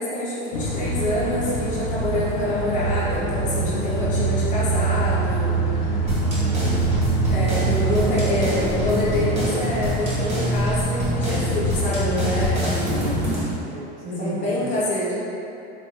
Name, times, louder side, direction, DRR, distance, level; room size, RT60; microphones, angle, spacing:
voice 1, 0.0-5.6 7.3-12.7 14.2-15.2, left 1 dB, 25° left, -9 dB, 0.8 m, -26 dB
sound 1, 0.5-13.4, right 2 dB, 65° left, 0.7 m, -24 dB
sound 2, 6.1-13.6, equal, 20° right, 0.7 m, -29 dB
voice 2, 6.2-6.8 7.8-8.0 13.7-14.7, right 1 dB, 55° right, -5 dB, 0.9 m, -34 dB
4.0 x 2.3 x 3.2 m, 2.8 s
supercardioid pair, 160°, 29 cm